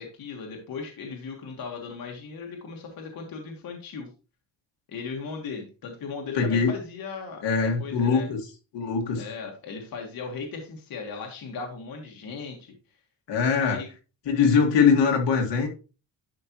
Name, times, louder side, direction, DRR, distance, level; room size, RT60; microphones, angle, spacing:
voice 1, 0.0-4.1 4.9-8.3 9.2-12.7 13.6-13.9, left 5 dB, 55° left, 1.6 m, -37 dB
voice 2, 6.3-6.7 7.4-8.4 8.7-9.2 13.3-13.8 14.3-15.7, left 5 dB, 75° left, 2.0 m, -22 dB
11.0 x 5.4 x 3.0 m
wide cardioid pair, 180°, 43 cm